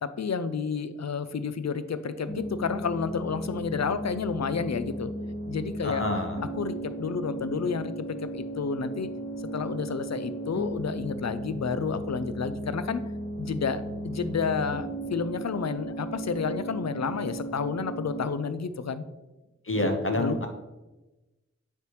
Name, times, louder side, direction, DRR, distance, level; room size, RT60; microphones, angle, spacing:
voice 1, 0.0-5.1 5.5-6.0 6.6-9.1 9.5-13.0 13.4-19.0 19.7-20.5, left 5 dB, 60° left, 13 dB, 0.5 m, -30 dB
sound 1, 2.3-18.3, right 1 dB, 15° left, 2.2 m, -36 dB
voice 2, 5.8-6.4 19.6-20.5, left 1 dB, 45° left, 3 dB, 1.0 m, -28 dB
9.5 x 3.3 x 3.1 m, 1.1 s
wide cardioid pair, 50°, 30 cm